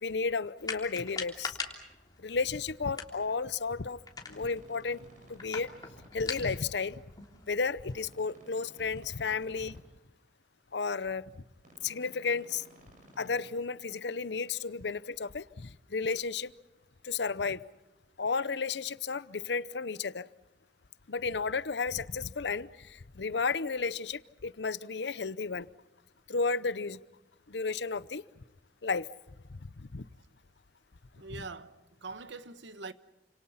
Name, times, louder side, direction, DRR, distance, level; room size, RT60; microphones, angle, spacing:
voice 1, 0.0-1.6 2.2-4.0 4.3-5.7 6.1-7.0 7.5-9.8 10.7-11.3 11.8-12.6 13.2-16.5 17.0-17.6 18.2-20.3 21.1-25.7 26.3-27.0 27.5-28.2 28.8-29.1 29.5-30.0, left 4 dB, 70° left, 0.8 m, -33 dB
sound 1, 0.6-8.0, left 4 dB, 20° left, 3.2 m, -43 dB
sound 2, 4.2-6.1 7.9-9.8 11.6-13.5, right 1 dB, 45° right, 7.0 m, -56 dB
voice 2, 31.1-32.9, right 3 dB, 80° right, 1.2 m, -43 dB
29.0 x 27.0 x 5.7 m
head